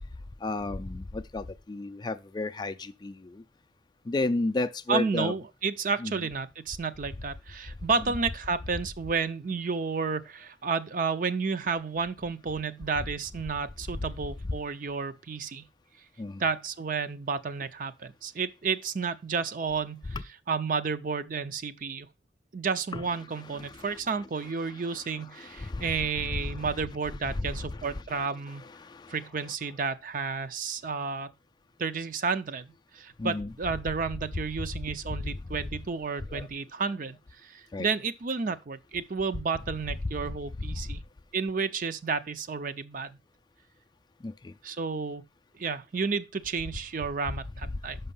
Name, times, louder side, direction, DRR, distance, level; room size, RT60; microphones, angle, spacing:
voice 1, 0.4-3.1 4.1-5.3 6.0-6.1 16.2-16.4 22.9-23.0 25.6-26.7 27.3-27.7 33.2-33.5 36.3-36.5 37.7-37.9 44.2-44.3, left 2 dB, 25° left, 0.3 m, -32 dB
voice 2, 4.9-15.6 16.4-20.2 20.5-22.1 22.5-28.6 29.1-31.3 31.8-37.2 37.4-41.0 41.3-43.2 44.6-45.2 45.6-48.0, right 5 dB, 50° right, 0.5 m, -31 dB
6.1 x 5.5 x 5.4 m
head